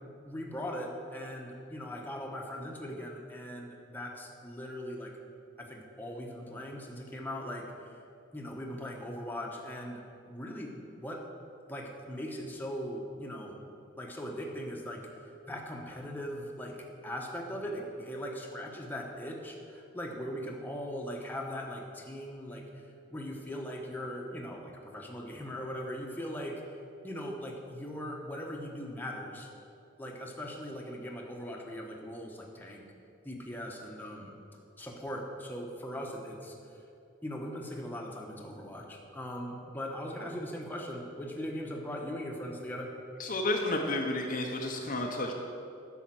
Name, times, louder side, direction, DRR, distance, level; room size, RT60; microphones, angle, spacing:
voice 1, 0.0-5.1 5.6-8.0 8.3-10.0 10.3-11.2 11.7-13.6 13.9-22.6 23.1-26.6 27.0-29.5 30.0-32.9 33.2-34.3 34.8-36.8 37.2-42.9, equal, 10° left, 0 dB, 1.1 m, -40 dB
voice 2, 43.2-45.3, left 2 dB, 40° left, 2 dB, 0.8 m, -31 dB
10.5 x 6.4 x 7.6 m, 2.6 s
head